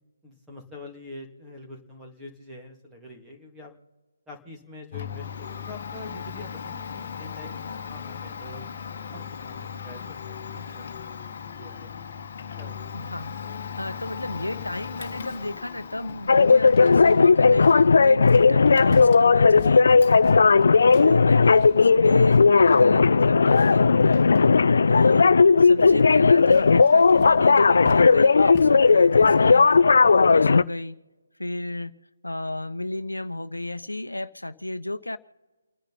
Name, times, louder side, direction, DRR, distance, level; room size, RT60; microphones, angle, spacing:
voice 1, 0.2-3.7 4.3-7.6 7.8-8.7 9.1-11.1 11.6-12.3 12.6-13.0 21.7-21.8, left 2 dB, 10° right, 2.6 m, -45 dB
Domestic sounds home sounds, 4.9-23.2 23.5-24.6, left 7 dB, 45° left, 1.5 m, -39 dB
voice 2, 12.9-13.3 13.8-20.2 20.9-24.3 24.9-25.3 25.6-31.0 31.4-32.0 32.2-35.2, left 1 dB, 90° left, 0.9 m, -32 dB
sound 1, 14.4-29.6, left 8 dB, 25° left, 2.0 m, -45 dB
sound 2, 16.3-30.6, left 4 dB, 60° left, 0.4 m, -16 dB
30.0 x 10.0 x 4.2 m
figure-of-eight pair, 145°, 0 cm